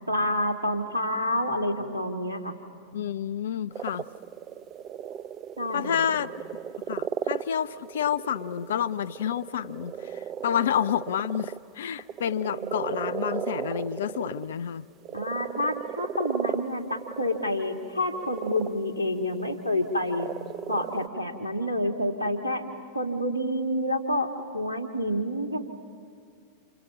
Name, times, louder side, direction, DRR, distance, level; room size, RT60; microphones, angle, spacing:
voice 1, 0.1-2.5 5.6-6.0 12.6-12.7 15.1-20.3 20.7-22.6 22.9-25.6, left 1 dB, 90° right, 5 dB, 2.1 m, -28 dB
voice 2, 2.9-4.1 5.7-6.3 6.9-14.9, left 9 dB, 60° left, 16 dB, 0.6 m, -29 dB
sound 1, 3.7-11.6 11.9-14.5 15.0-18.7 19.0-19.6 20.1-21.1, right 9 dB, 30° right, 0.6 m, -35 dB
29.0 x 28.0 x 5.9 m, 2.2 s
figure-of-eight pair, 90°, 0 cm